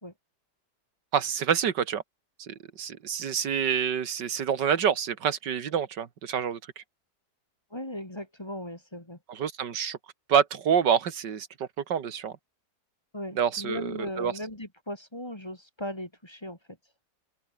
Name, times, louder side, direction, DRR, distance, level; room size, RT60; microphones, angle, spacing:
voice 1, 1.1-2.0 2.4-6.8 9.3-10.0 10.3-11.5 11.9-12.3 13.4-14.3, right 8 dB, 90° right, 2.2 m, -27 dB
voice 2, 7.7-9.2 13.1-16.6, left 1 dB, 15° left, 2.7 m, -37 dB
open air
omnidirectional pair, 1.8 m